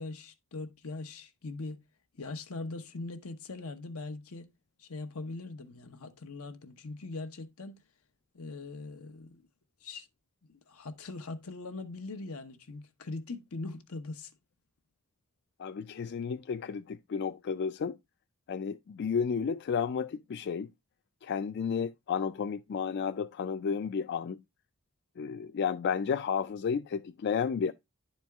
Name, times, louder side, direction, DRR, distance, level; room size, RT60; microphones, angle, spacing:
voice 1, 0.0-1.8 2.1-4.5 4.8-7.8 8.3-9.4 9.8-10.1 10.5-14.3, left 3 dB, 85° left, 1.0 m, -41 dB
voice 2, 15.6-18.0 18.5-20.7 21.2-24.4 25.2-27.7, left 6 dB, 50° left, 0.3 m, -32 dB
10.5 x 4.4 x 3.4 m
head